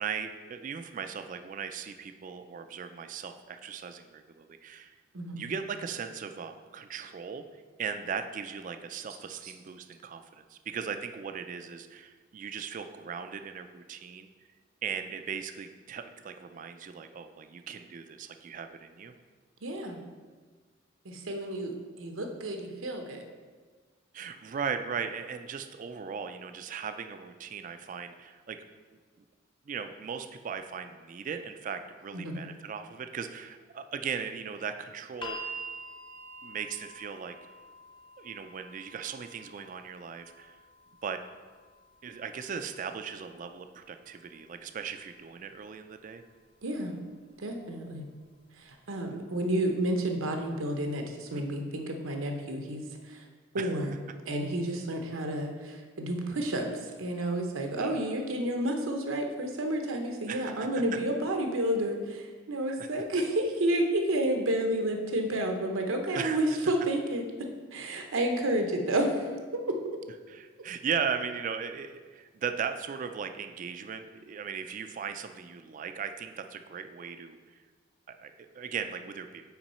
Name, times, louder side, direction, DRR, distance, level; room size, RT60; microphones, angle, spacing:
voice 1, 0.0-4.9 5.3-7.4 7.8-14.3 14.8-19.1 24.1-28.6 29.7-35.6 36.4-37.4 38.2-40.6 41.0-41.2 42.0-46.2 51.3-51.4 53.6-53.8 57.8-58.0 60.3-60.8 62.8-62.9 66.1-66.4 70.3-77.4 78.1-79.5, right 6 dB, 40° right, 8 dB, 0.3 m, -38 dB
voice 2, 19.6-20.0 21.0-23.3 32.1-32.4 46.6-46.9 47.4-48.0 48.6-53.2 53.5-54.0 54.3-67.3 67.7-70.0, right 1 dB, 85° right, 4 dB, 0.8 m, -30 dB
sound 1, 35.2-47.3 48.4-48.5, right 1 dB, 25° left, 0.7 m, -48 dB
5.9 x 4.6 x 4.2 m, 1.4 s
head